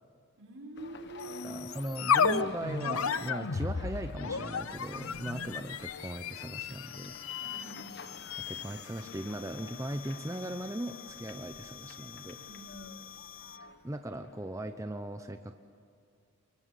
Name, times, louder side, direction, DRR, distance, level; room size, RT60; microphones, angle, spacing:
voice 1, 0.4-1.6 5.2-5.5 7.4-8.1 12.4-13.1, right 2 dB, 75° right, 2 dB, 4.0 m, -47 dB
sound 1, 0.8-14.9, left 4 dB, 50° left, 1.2 m, -51 dB
sound 2, 1.2-13.7, left 6 dB, 75° left, 0.8 m, -35 dB
voice 2, 1.4-7.1 8.5-12.4 13.8-15.6, right 1 dB, 15° right, 7 dB, 0.8 m, -38 dB
24.5 x 22.5 x 8.4 m, 2.4 s
head